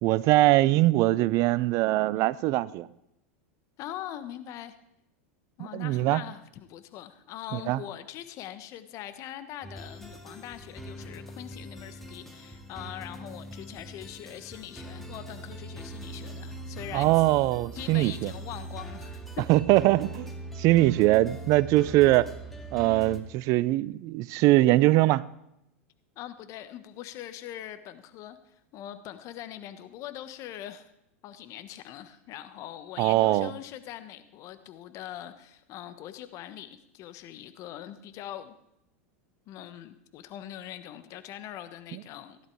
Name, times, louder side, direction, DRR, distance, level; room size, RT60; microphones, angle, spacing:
voice 1, 0.0-2.9 5.7-6.2 7.5-7.8 16.9-18.3 19.5-20.3 20.6-22.3 22.7-25.2 33.0-33.5 41.9-42.0, right 17 dB, 50° right, 19 dB, 0.6 m, -22 dB
voice 2, 3.8-4.7 5.6-17.3 17.7-19.2 26.2-30.9 31.2-38.5 39.5-42.4, left 12 dB, 45° left, 11 dB, 1.3 m, -42 dB
sound 1, 9.6-23.2, right 1 dB, 5° left, 2.4 m, -41 dB
16.5 x 11.5 x 4.8 m, 0.81 s
hypercardioid pair, 95°, 7 cm